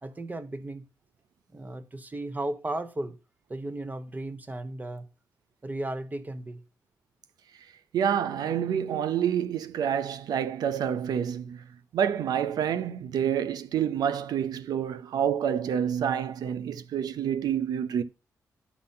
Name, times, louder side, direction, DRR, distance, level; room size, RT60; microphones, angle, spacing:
voice 1, 0.0-0.8 1.5-3.2 3.5-5.1 5.6-6.6, right 2 dB, 25° right, 1.2 m, -35 dB
voice 2, 7.9-11.6 11.9-18.0, right 8 dB, 80° right, 0.7 m, -28 dB
11.5 x 4.0 x 5.8 m
cardioid pair, 65°, 7 cm